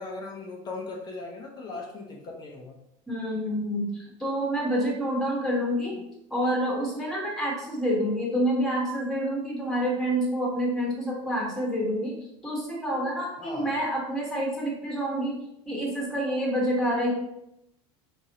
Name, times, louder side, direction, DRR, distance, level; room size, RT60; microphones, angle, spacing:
voice 1, 0.0-2.8 13.4-13.7, left 3 dB, 30° left, 0 dB, 0.8 m, -38 dB
voice 2, 3.1-6.0 6.3-12.1 12.4-15.4 15.7-17.1, equal, ahead, -4 dB, 1.3 m, -28 dB
4.9 x 3.6 x 2.8 m, 0.80 s
supercardioid pair, 135°, 14 cm